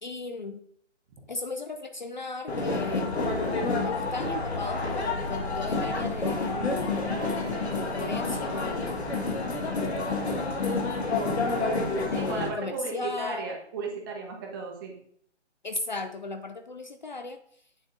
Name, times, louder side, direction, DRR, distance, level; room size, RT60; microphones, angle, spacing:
voice 1, 0.0-0.6 1.3-3.1 3.7-9.0 9.7-10.5 12.1-13.5 15.6-17.4, left 3 dB, 40° left, 7 dB, 0.5 m, -36 dB
sound 1, 2.5-12.5, left 3 dB, 60° left, 1.8 m, -29 dB
voice 2, 12.1-15.0, right 3 dB, 20° right, 1 dB, 1.1 m, -35 dB
8.7 x 7.0 x 2.6 m, 0.65 s
figure-of-eight pair, 140°, 36 cm